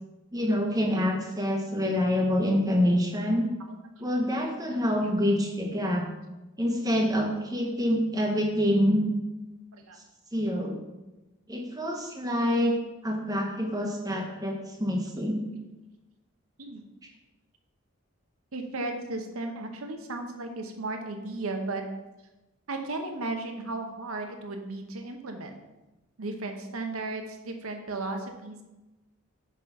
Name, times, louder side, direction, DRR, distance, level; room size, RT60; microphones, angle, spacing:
voice 1, 0.3-3.5 4.0-6.1 6.6-9.0 10.3-10.8 11.5-12.8 13.0-15.5, equal, 15° right, 1 dB, 1.1 m, -26 dB
voice 2, 4.7-5.1 9.7-10.0 15.5-15.6 16.6-16.8 18.5-21.8 22.7-25.6 26.2-28.6, right 2 dB, 80° right, 4 dB, 0.9 m, -35 dB
6.0 x 5.7 x 5.7 m, 1.0 s
head